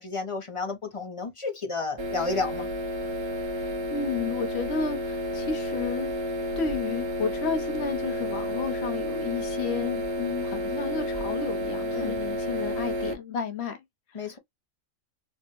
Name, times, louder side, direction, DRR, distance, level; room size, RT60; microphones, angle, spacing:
voice 1, 0.0-2.7 11.9-12.2 14.1-14.4, left 4 dB, 35° left, 0.6 m, -31 dB
sound 1, 2.0-13.1, left 1 dB, 30° right, 0.5 m, -31 dB
voice 2, 3.6-6.1 6.6-14.3, left 5 dB, 60° left, 1.0 m, -32 dB
4.3 x 2.1 x 3.0 m
omnidirectional pair, 1.3 m